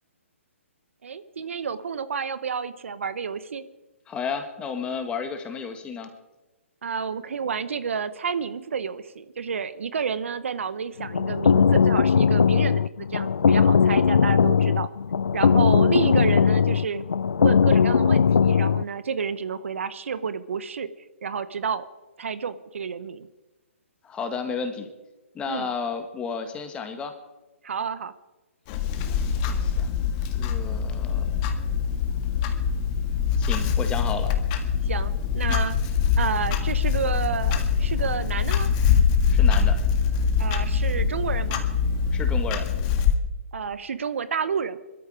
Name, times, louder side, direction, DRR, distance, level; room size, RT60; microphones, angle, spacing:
voice 1, 1.0-3.6 6.8-14.9 15.3-17.0 17.4-20.9 21.2-21.8 22.2-23.3 25.5-25.7 27.6-28.1 34.8-35.8 36.2-38.7 40.4-41.6 43.5-44.8, right 6 dB, 65° right, 14 dB, 1.1 m, -30 dB
voice 2, 4.1-6.1 24.0-24.9 25.3-27.1 29.1-31.5 33.4-34.3 35.5-35.6 39.3-39.8 42.1-42.7, left 5 dB, 15° left, 7 dB, 1.8 m, -33 dB
sound 1, 11.0-18.8, left 6 dB, 75° left, 0.5 m, -19 dB
Clock, 28.7-43.2, left 6 dB, 30° left, 1.7 m, -23 dB
22.5 x 13.0 x 4.9 m, 1.1 s
hypercardioid pair, 140°, 7 cm